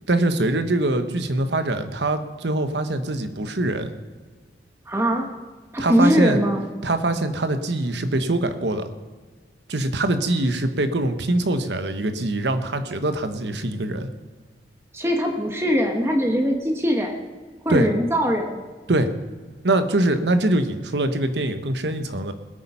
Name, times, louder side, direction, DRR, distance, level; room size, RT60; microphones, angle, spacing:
voice 1, 0.1-3.9 5.8-6.4 6.8-8.9 9.7-14.1 17.7-17.9 18.9-19.1 19.6-22.3, right 2 dB, 85° right, 8 dB, 1.1 m, -23 dB
voice 2, 4.9-5.3 5.7-6.6 14.9-17.2 17.6-18.6, equal, 15° right, 2 dB, 1.2 m, -21 dB
20.0 x 8.7 x 5.6 m, 1.4 s
head